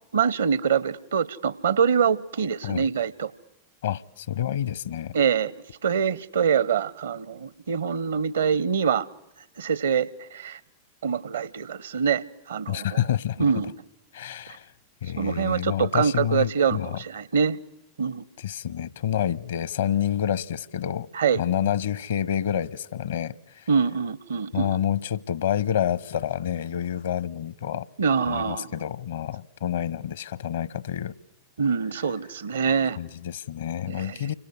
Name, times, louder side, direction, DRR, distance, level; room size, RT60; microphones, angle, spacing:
voice 1, 0.1-3.3 5.1-5.5 5.8-9.1 9.6-10.6 11.0-13.0 13.4-13.7 15.2-17.6 18.0-18.2 21.1-21.4 23.7-24.8 28.0-28.7 31.6-33.0 33.9-34.3, right 6 dB, 65° right, 1.0 m, -25 dB
voice 2, 3.8-5.1 12.7-13.5 14.1-14.7 15.0-17.0 18.4-21.1 21.3-23.7 24.5-27.9 28.3-31.1 33.0-34.3, left 10 dB, 60° left, 1.0 m, -28 dB
29.0 x 25.0 x 8.2 m
figure-of-eight pair, 90°, 0 cm